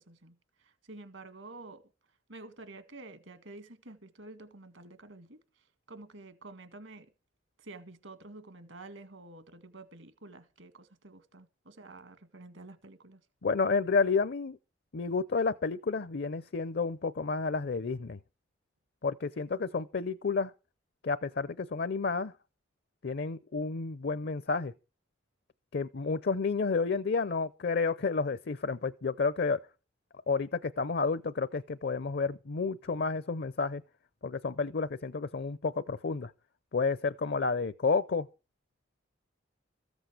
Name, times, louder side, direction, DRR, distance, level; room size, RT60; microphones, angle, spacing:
voice 1, 0.0-1.8 2.3-7.1 7.6-13.2, right 2 dB, 70° right, 1.9 m, -49 dB
voice 2, 13.4-14.6 14.9-18.2 19.0-20.5 21.0-22.3 23.0-24.7 25.7-29.6 30.3-33.8 34.2-36.3 36.7-38.3, left 4 dB, 55° left, 0.6 m, -30 dB
14.5 x 8.1 x 6.5 m
head